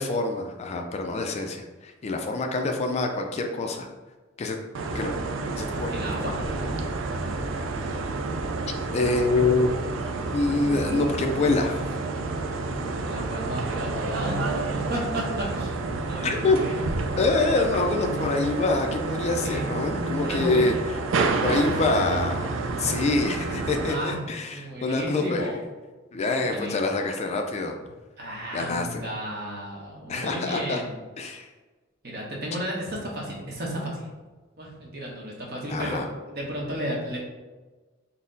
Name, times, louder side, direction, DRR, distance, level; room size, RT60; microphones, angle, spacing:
voice 1, 0.0-3.9 4.4-4.6 4.9-5.1 5.6-5.9 8.9-9.7 10.3-11.9 16.2-16.6 17.2-20.7 21.4-22.5 22.8-25.5 26.1-27.7 28.5-29.0 30.1-30.8 31.2-31.5 35.7-36.1, left 3 dB, 35° left, 4 dB, 0.3 m, -25 dB
sound 1, 4.7-23.9, right 3 dB, 70° right, 0.4 m, -29 dB
voice 2, 5.9-6.4 13.0-15.8 16.1-17.0 19.3-19.7 20.2-20.6 23.9-24.2 24.5-25.6 26.4-26.7 28.2-30.9 32.0-34.0 34.6-37.2, equal, 55° right, -3 dB, 1.0 m, -33 dB
4.0 x 2.0 x 3.8 m, 1.3 s
head